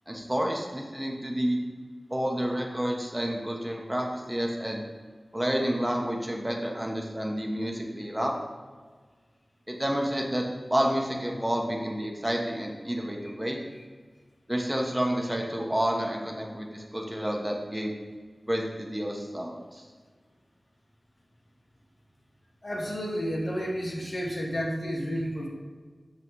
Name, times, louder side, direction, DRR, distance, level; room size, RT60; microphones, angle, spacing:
voice 1, 0.1-1.6 2.1-4.8 5.3-8.4 9.7-10.4 10.7-13.6 14.5-17.9 18.5-19.8, equal, 15° right, 0 dB, 1.1 m, -29 dB
voice 2, 22.6-25.5, equal, 55° left, -2 dB, 1.8 m, -31 dB
6.9 x 5.7 x 4.7 m, 1.5 s
wide cardioid pair, 45°, 0 cm